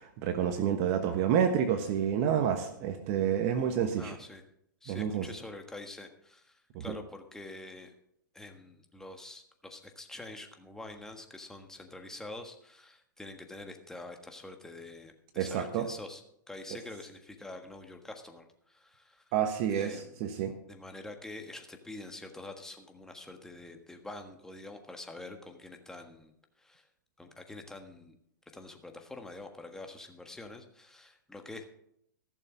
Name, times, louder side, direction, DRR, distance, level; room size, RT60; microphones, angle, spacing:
voice 1, 0.0-4.1 4.9-5.2 6.7-7.0 15.4-15.9 19.3-20.5, right 8 dB, 45° right, 8 dB, 1.2 m, -29 dB
voice 2, 4.0-4.4 4.8-7.9 8.3-16.2 16.5-19.3 19.7-20.3 20.7-26.9 27.2-28.2 28.5-31.7, left 2 dB, 5° left, 4 dB, 1.5 m, -46 dB
15.0 x 6.8 x 6.1 m, 0.73 s
hypercardioid pair, 125°, 11 cm